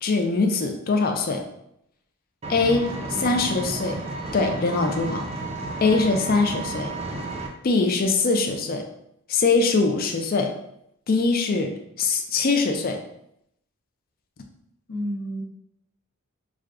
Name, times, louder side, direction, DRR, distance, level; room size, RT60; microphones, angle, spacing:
voice 1, 0.0-1.5 2.5-2.9 3.2-4.0 4.3-5.3 5.8-6.9 7.6-8.9 9.3-10.5 11.1-13.0, left 3 dB, 40° left, 4 dB, 0.4 m, -22 dB
Engine, 2.4-7.5, right 2 dB, 25° right, 0.5 m, -32 dB
voice 2, 2.9-3.5 14.9-15.4, equal, 90° left, -3 dB, 0.9 m, -32 dB
6.1 x 2.2 x 2.4 m, 0.77 s
head